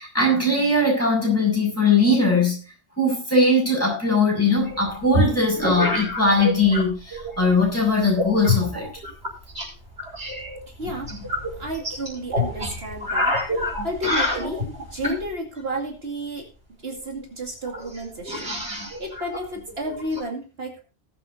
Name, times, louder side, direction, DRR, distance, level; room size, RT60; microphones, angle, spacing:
voice 1, 0.0-2.6 3.0-8.9, left 2 dB, 15° left, -2 dB, 6.6 m, -20 dB
sound 1, 4.7-6.8 7.1-7.6 8.2-9.7 10.0-15.3 16.9-17.0 17.2-17.3 17.7-20.2, left 1 dB, 85° right, 6.2 m, -27 dB
voice 2, 10.7-11.1 11.6-16.5 16.8-20.8, right 1 dB, 65° right, 0 dB, 2.5 m, -32 dB
19.5 x 8.1 x 2.7 m, 0.32 s
omnidirectional pair, 1.1 m